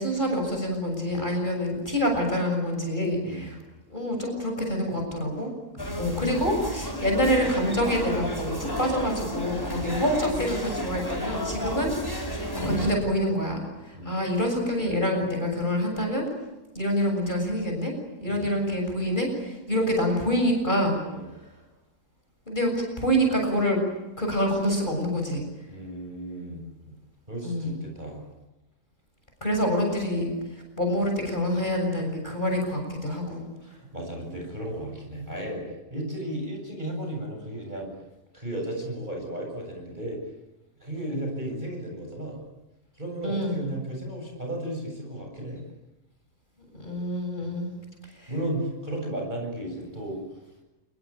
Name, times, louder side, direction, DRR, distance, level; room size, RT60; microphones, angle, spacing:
voice 1, 0.0-3.6 3.9-5.5 6.0-13.6 14.0-16.3 16.7-17.9 18.2-21.0 22.5-22.7 23.0-23.8 24.2-25.4 27.4-27.8 29.4-30.3 30.8-33.5 43.2-43.6 46.7-47.7 48.2-48.3, equal, 30° left, 2 dB, 7.3 m, -26 dB
voice 2, 5.7-6.4 9.8-10.0 11.6-11.8 13.9-14.1 18.3-18.5 21.1-21.2 25.7-26.6 27.3-28.2 33.6-35.6 35.9-37.9 38.3-40.2 40.8-42.4 43.0-45.6 47.4-47.5 48.3-50.2, right 1 dB, 30° right, 1 dB, 8.0 m, -34 dB
sound 1, 5.8-13.0, equal, 15° left, 4.5 m, -32 dB
29.0 x 21.0 x 8.9 m, 1.0 s
omnidirectional pair, 1.7 m